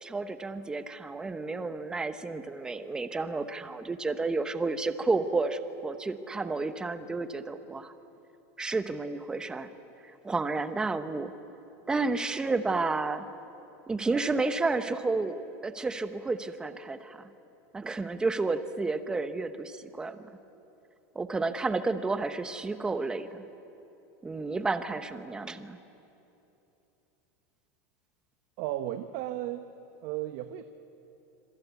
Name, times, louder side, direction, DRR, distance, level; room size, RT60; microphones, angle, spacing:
voice 1, 0.0-7.9 8.6-9.7 10.2-11.3 11.9-13.3 13.9-17.3 17.7-20.2 21.1-23.5 24.2-25.8, right 3 dB, 10° right, 10 dB, 0.9 m, -31 dB
voice 2, 28.6-29.6 30.0-30.6, right 13 dB, 50° right, 9 dB, 0.9 m, -34 dB
26.0 x 24.5 x 8.2 m, 3.0 s
supercardioid pair, 165°, 8 cm